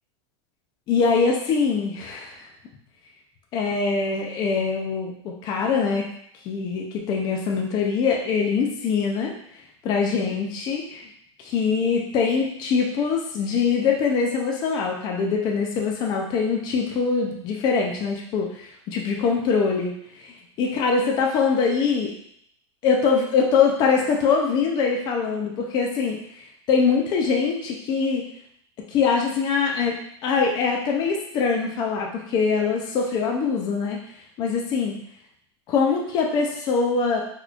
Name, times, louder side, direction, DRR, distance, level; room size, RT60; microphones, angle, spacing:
voice 1, 0.9-2.5 3.5-6.1 6.5-9.3 9.8-11.1 11.4-19.9 20.2-22.1 22.8-26.2 26.7-28.2 28.9-29.9 30.2-34.0 34.4-35.0 35.7-37.2, left 5 dB, 30° left, 0 dB, 0.5 m, -23 dB
3.9 x 3.0 x 2.4 m, 0.69 s
supercardioid pair, 155°, 15 cm